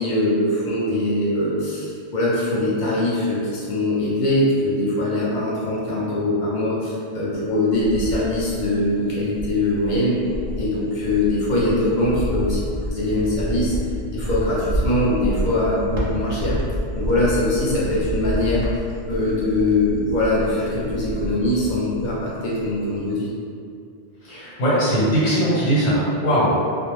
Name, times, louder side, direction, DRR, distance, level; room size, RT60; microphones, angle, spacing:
voice 1, 0.0-10.2 10.6-12.6 12.9-13.8 14.1-16.6 16.9-18.6 19.1-23.3, left 1 dB, 55° left, -7 dB, 0.6 m, -22 dB
Cricket, 7.3-8.9 9.3-22.3 22.6-23.1, equal, 60° right, 0.4 m, -29 dB
voice 2, 24.2-26.6, equal, 90° left, -8 dB, 1.2 m, -20 dB
2.5 x 2.0 x 3.0 m, 2.4 s
omnidirectional pair, 1.2 m